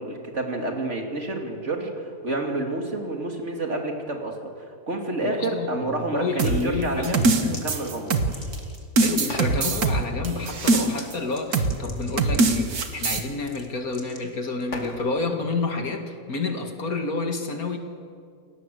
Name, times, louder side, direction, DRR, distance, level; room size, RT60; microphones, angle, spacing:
voice 1, 0.0-7.3 7.6-8.2, right 2 dB, 45° right, 2 dB, 3.0 m, -29 dB
voice 2, 5.2-7.6 9.0-17.8, left 3 dB, 65° left, 4 dB, 2.5 m, -29 dB
sound 1, 6.2-6.6 7.0-8.9 9.2-9.6 10.9-11.1 11.3-15.1, left 2 dB, 45° left, 2.9 m, -40 dB
sound 2, 6.4-8.6 9.0-11.1 11.5-11.8 12.2-13.2, right 3 dB, 70° right, 2.0 m, -22 dB
28.5 x 18.0 x 7.8 m, 2.2 s
omnidirectional pair, 1.7 m